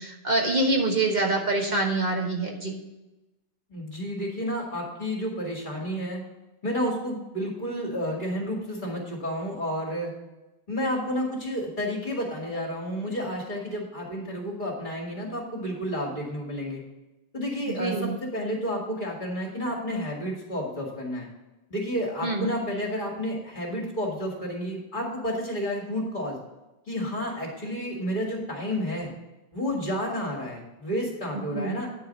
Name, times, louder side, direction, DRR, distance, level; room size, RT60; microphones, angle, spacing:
voice 1, 0.0-2.7 17.7-18.2 22.2-22.5 31.3-31.8, right 2 dB, 45° right, 0 dB, 1.3 m, -26 dB
voice 2, 3.7-6.2 6.6-10.1 10.7-16.8 17.3-21.3 21.7-26.4 26.9-29.1 29.5-31.9, equal, 45° left, -2 dB, 2.4 m, -31 dB
9.6 x 4.8 x 6.4 m, 1.0 s
omnidirectional pair, 1.1 m